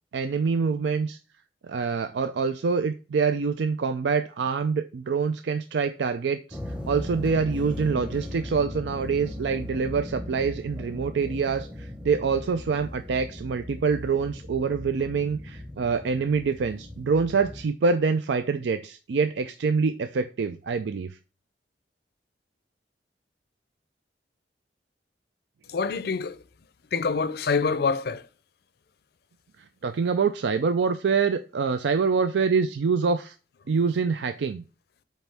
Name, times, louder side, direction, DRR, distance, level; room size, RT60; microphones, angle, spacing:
voice 1, 0.1-1.2 1.7-6.6 6.9-21.2 29.8-33.3 33.7-34.6, right 5 dB, 80° right, 0.4 m, -25 dB
sound 1, 6.5-17.7, left 1 dB, 5° right, 0.9 m, -38 dB
voice 2, 25.7-26.4 26.9-28.3, left 5 dB, 60° left, 0.5 m, -26 dB
8.3 x 3.5 x 3.4 m
head